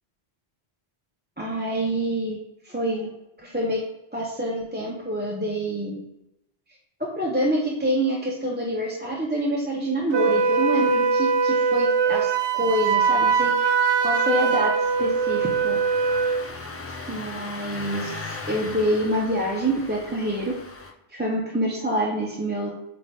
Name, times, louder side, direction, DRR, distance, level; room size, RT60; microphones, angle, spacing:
voice 1, 1.4-2.4 2.6-3.1 3.4-3.8 4.1-6.0 7.1-13.7 14.0-15.8 17.1-20.5 21.1-22.7, right 1 dB, 10° right, -4 dB, 0.8 m, -26 dB
Wind instrument woodwind instrument, 10.1-16.5, right 5 dB, 80° right, 0.8 m, -22 dB
Engine starting, 14.8-20.9, left 3 dB, 20° left, 0.4 m, -38 dB
8.1 x 3.4 x 3.6 m, 0.88 s
omnidirectional pair, 1.1 m